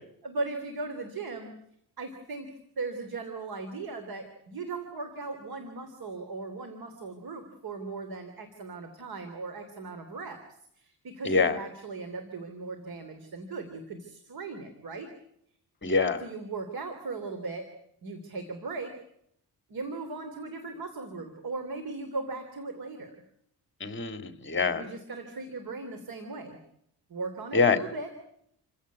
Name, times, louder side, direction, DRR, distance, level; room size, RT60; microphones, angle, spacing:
voice 1, 0.2-1.5 2.0-10.4 10.8-15.1 16.2-17.7 18.0-18.9 19.7-23.2 24.7-26.6 27.1-28.1, right 3 dB, 55° right, 8 dB, 3.4 m, -38 dB
voice 2, 11.2-11.6 15.8-16.2 23.8-24.8 27.5-27.8, left 4 dB, 25° left, 9 dB, 2.3 m, -25 dB
29.0 x 16.0 x 9.5 m, 0.74 s
cardioid pair, 135°, 42 cm